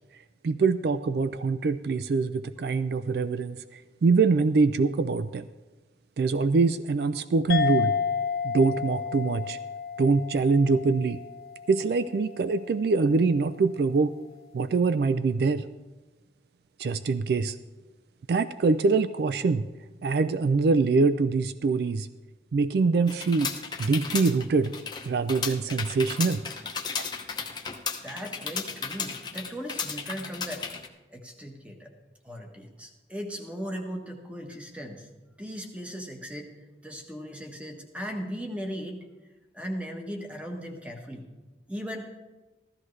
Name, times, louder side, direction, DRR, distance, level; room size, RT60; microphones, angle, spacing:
voice 1, 0.4-3.6 4.0-5.4 6.2-7.9 8.4-9.6 10.0-11.2 11.7-14.1 14.5-15.6 16.8-17.6 18.3-19.6 20.0-22.1 22.5-23.5 23.8-24.7 25.1-26.4 27.0-27.1, right 4 dB, 65° right, 13 dB, 0.3 m, -24 dB
sound 1, 7.5-12.4, left 6 dB, 55° left, 0.5 m, -31 dB
sound 2, 23.1-30.9, left 6 dB, 25° left, 0.7 m, -34 dB
voice 2, 28.0-30.6 31.1-31.9 32.2-35.1 35.4-36.5 36.8-39.0 39.5-41.3 41.7-42.2, equal, 5° right, 3 dB, 1.2 m, -37 dB
15.0 x 13.0 x 3.2 m, 1.2 s
head